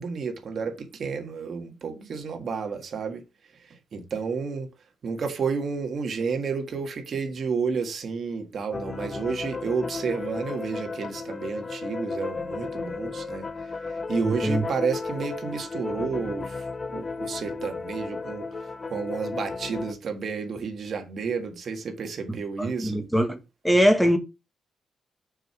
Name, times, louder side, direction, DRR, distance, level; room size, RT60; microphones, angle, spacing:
voice 1, 0.0-3.2 3.6-4.7 5.0-13.5 13.9-18.5 18.9-23.0, right 5 dB, 50° right, 1.6 m, -31 dB
sound 1, 8.7-19.9, left 4 dB, 25° left, 0.7 m, -34 dB
voice 2, 14.2-14.6 22.6-23.4 23.6-24.2, equal, ahead, 1.4 m, -22 dB
6.7 x 4.6 x 5.9 m
wide cardioid pair, 140°, 0 cm